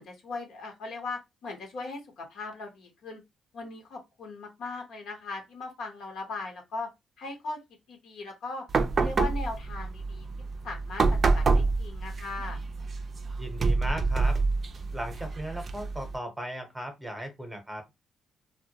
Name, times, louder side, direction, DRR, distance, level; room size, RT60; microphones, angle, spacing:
voice 1, 0.0-3.2 3.5-6.9 7.2-7.6 7.9-8.7 8.9-10.3 10.6-11.0 11.3-12.6, left 3 dB, 75° left, 0.9 m, -38 dB
sound 1, 8.7-16.2, right 3 dB, 45° right, 0.4 m, -27 dB
voice 2, 13.4-14.4 14.9-17.9, right 1 dB, 5° right, 0.8 m, -37 dB
2.1 x 2.1 x 2.7 m
cardioid pair, 90°, 0 cm